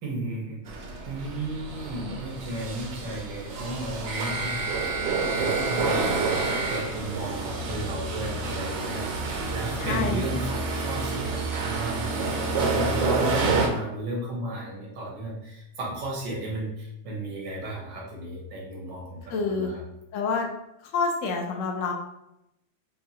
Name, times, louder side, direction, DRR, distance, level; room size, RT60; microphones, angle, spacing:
voice 1, 0.0-0.6 1.1-4.9 5.4-12.2 12.6-19.8, right 1 dB, 85° right, -3 dB, 1.8 m, -34 dB
sound 1, 0.7-13.7, right 3 dB, 65° right, 0.9 m, -28 dB
voice 2, 9.8-10.3 19.3-19.7 20.1-20.5 20.9-21.9, left 4 dB, 70° left, 1 dB, 0.7 m, -27 dB
5.5 x 2.3 x 2.8 m, 0.84 s
omnidirectional pair, 1.9 m